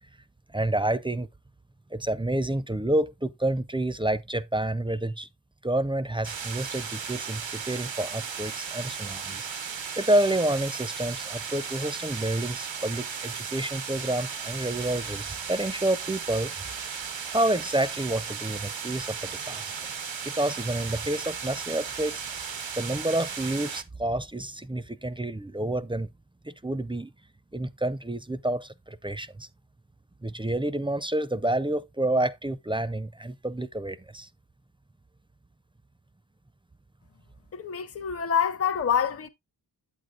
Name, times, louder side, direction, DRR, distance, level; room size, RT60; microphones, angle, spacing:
voice 1, 0.5-1.3 1.9-5.3 5.6-16.5 17.3-19.7 20.2-22.5 22.7-26.1 26.4-27.1 27.5-29.5 30.2-34.3, right 1 dB, 10° right, 0.4 m, -29 dB
sound 1, 6.2-23.8, right 6 dB, 85° right, 0.8 m, -36 dB
voice 2, 37.5-39.3, left 7 dB, 35° left, 0.6 m, -26 dB
8.3 x 7.9 x 2.4 m
wide cardioid pair, 60°, 44 cm